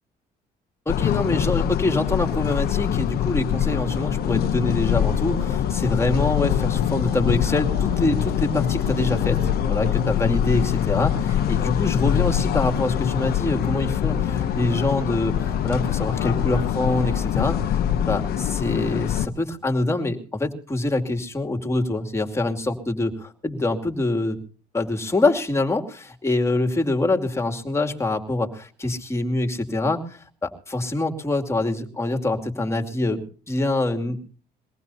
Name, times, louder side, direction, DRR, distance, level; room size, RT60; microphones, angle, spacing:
sound 1, 0.9-19.3, left 10 dB, 65° left, 0.9 m, -23 dB
voice 1, 0.9-24.4 24.7-34.2, left 2 dB, 15° left, 4 dB, 2.5 m, -25 dB
sound 2, 3.5-18.5, right 5 dB, 80° right, 4.6 m, -41 dB
23.0 x 18.5 x 2.8 m, 0.42 s
cardioid pair, 110°, 17 cm